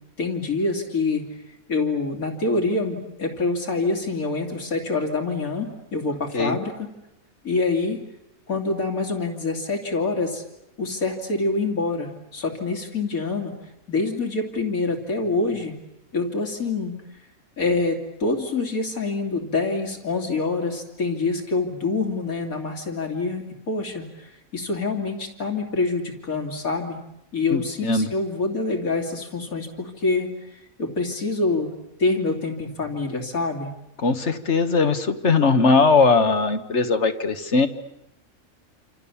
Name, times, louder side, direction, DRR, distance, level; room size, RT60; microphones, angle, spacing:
voice 1, 0.2-1.3 1.7-6.9 7.4-8.0 8.5-10.4 10.8-13.5 13.9-15.8 16.1-16.9 17.6-27.0 27.3-31.7 32.0-33.7, left 3 dB, 85° left, 3 dB, 3.3 m, -26 dB
voice 2, 27.5-28.1 34.0-37.7, left 4 dB, 55° left, 8 dB, 1.6 m, -20 dB
28.0 x 27.5 x 7.2 m, 0.88 s
omnidirectional pair, 1.5 m